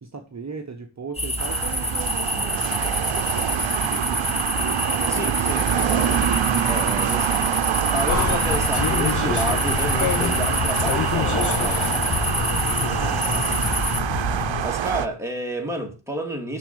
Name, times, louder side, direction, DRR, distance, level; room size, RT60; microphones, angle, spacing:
voice 1, 0.0-6.3 12.3-13.1, right 4 dB, 35° right, 1.1 m, -37 dB
sound 1, 1.1-14.0, left 1 dB, 15° left, 1.2 m, -28 dB
sound 2, 1.4-15.1, right 10 dB, 75° right, 0.7 m, -25 dB
voice 2, 5.1-6.0 6.7-11.9 14.6-16.6, equal, 5° right, 2.5 m, -30 dB
sound 3, 8.1-14.7, left 8 dB, 40° left, 0.6 m, -27 dB
7.1 x 6.3 x 7.0 m
wide cardioid pair, 95°, 46 cm